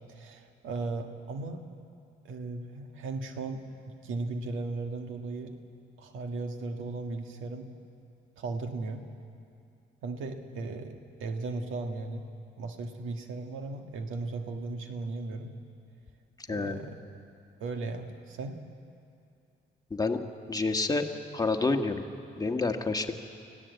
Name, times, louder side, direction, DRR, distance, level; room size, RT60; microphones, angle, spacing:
voice 1, 0.1-1.6 2.2-5.5 6.0-7.7 8.4-9.0 10.0-12.2 12.6-15.5 16.5-17.0 17.6-18.6, right 3 dB, 85° right, 5 dB, 1.7 m, -36 dB
voice 2, 16.5-16.8 19.9-20.2 20.5-21.1 21.3-22.0 22.4-23.1, left 3 dB, 20° left, 4 dB, 1.5 m, -28 dB
25.0 x 15.5 x 8.1 m, 2.5 s
cardioid pair, 90°, 20 cm